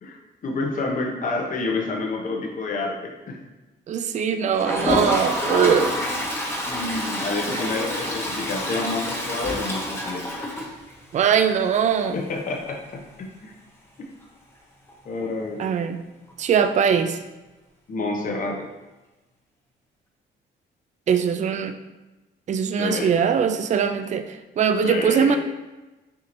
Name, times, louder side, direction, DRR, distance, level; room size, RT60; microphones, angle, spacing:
voice 1, 0.0-3.4 6.7-10.3 12.1-13.6 15.0-15.6 17.9-18.7 22.7-23.2 24.8-25.4, left 3 dB, 40° left, 1 dB, 0.8 m, -29 dB
voice 2, 3.9-6.0 11.1-12.2 15.6-16.0 16.4-17.2 21.1-21.7 22.5-24.2 24.6-25.4, right 7 dB, 35° right, 8 dB, 0.4 m, -21 dB
Toilet flush, 4.5-11.3 11.6-11.7 11.9-12.0 12.2-12.3 14.9-15.0 16.3-16.4, left 1 dB, 10° left, 0.9 m, -27 dB
6.1 x 2.8 x 2.6 m, 1.1 s
cardioid pair, 90°, 20 cm